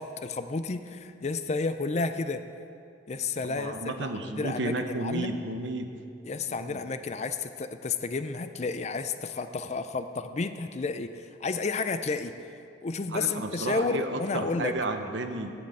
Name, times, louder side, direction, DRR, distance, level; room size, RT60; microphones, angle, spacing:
voice 1, 0.0-2.4 3.1-5.4 6.2-12.3 12.8-14.7, left 4 dB, 40° left, 10 dB, 0.4 m, -31 dB
voice 2, 3.5-5.9 6.5-6.8 13.1-15.5, right 2 dB, 80° right, 7 dB, 0.8 m, -32 dB
8.6 x 7.9 x 7.7 m, 2.5 s
head